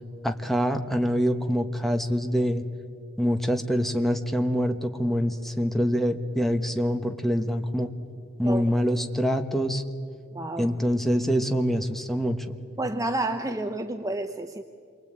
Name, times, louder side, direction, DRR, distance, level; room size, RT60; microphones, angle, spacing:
voice 1, 0.2-2.6 3.2-7.9 8.4-9.8 10.6-12.6, equal, ahead, 6 dB, 1.3 m, -25 dB
voice 2, 10.3-10.8 12.8-14.6, right 2 dB, 15° right, 6 dB, 0.8 m, -30 dB
28.0 x 23.5 x 8.8 m, 2.4 s
head